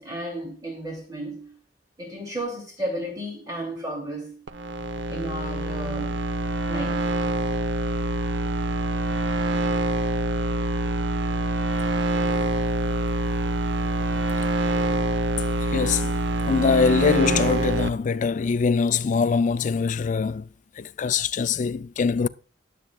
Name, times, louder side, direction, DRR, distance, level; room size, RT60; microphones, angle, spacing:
voice 1, 0.0-1.5 2.0-4.4 5.1-6.2 6.7-7.1, right 1 dB, 20° right, 2.7 m, -33 dB
sound 1, 4.5-17.9, right 1 dB, 85° right, 0.8 m, -25 dB
voice 2, 15.7-16.2 16.5-20.5 20.8-22.3, left 5 dB, 45° left, 0.4 m, -23 dB
20.0 x 7.6 x 2.3 m
head